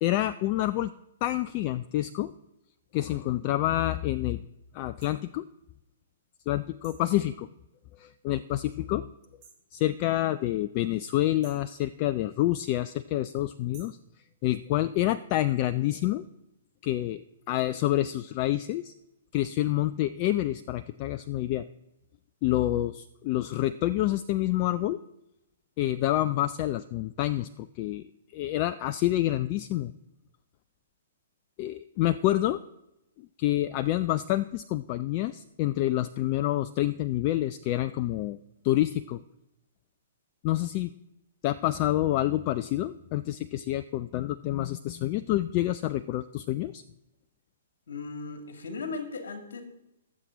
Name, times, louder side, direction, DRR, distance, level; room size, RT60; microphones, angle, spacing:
voice 1, 0.0-0.9 1.2-2.3 2.9-4.4 4.7-5.4 6.5-7.5 8.0-9.1 9.7-14.0 14.4-16.3 16.8-18.9 19.3-21.7 22.4-25.0 25.8-28.1 28.3-29.9 31.6-32.6 33.2-38.4 38.6-39.2 40.4-40.9 41.4-46.8, left 14 dB, 35° left, 13 dB, 0.4 m, -28 dB
sound 1, 5.0-5.2 6.8-7.1 9.4-9.7 11.4-11.7 13.7-14.0, right 7 dB, 35° right, 3.7 m, -54 dB
voice 2, 47.9-49.6, left 4 dB, 65° left, 5 dB, 2.4 m, -37 dB
19.5 x 7.5 x 3.9 m, 0.88 s
figure-of-eight pair, 120°, 0 cm